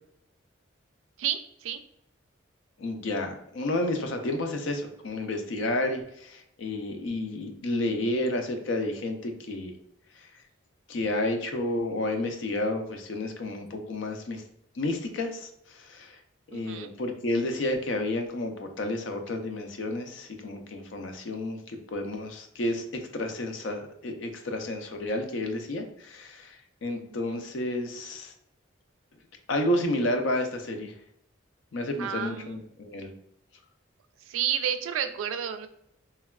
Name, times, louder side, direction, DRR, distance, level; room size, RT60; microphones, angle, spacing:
voice 1, 1.2-1.8 16.5-16.9 27.3-27.4 32.0-32.6 34.2-35.7, right 9 dB, 85° right, 9 dB, 0.3 m, -31 dB
voice 2, 2.8-9.7 10.9-14.4 14.8-16.2 16.5-28.3 29.5-30.9 31.7-33.1, left 1 dB, 70° left, 5 dB, 0.5 m, -31 dB
3.2 x 2.2 x 2.2 m, 0.75 s
head